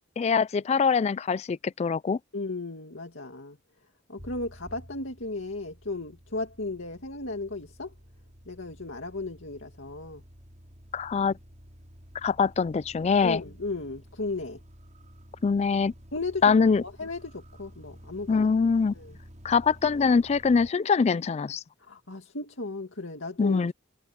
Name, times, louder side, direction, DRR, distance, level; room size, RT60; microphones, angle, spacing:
voice 1, 0.2-2.2 10.9-11.3 12.2-13.4 15.4-15.9 16.4-16.8 18.3-18.9 19.4-21.6 23.4-23.7, left 5 dB, 35° left, 0.3 m, -23 dB
voice 2, 2.3-3.6 4.1-7.9 8.5-10.2 13.2-14.6 16.1-16.5 16.8-18.5 18.9-19.2 21.8-23.6, left 2 dB, 85° left, 2.2 m, -35 dB
sound 1, 4.2-20.7, equal, 40° right, 5.9 m, -51 dB
head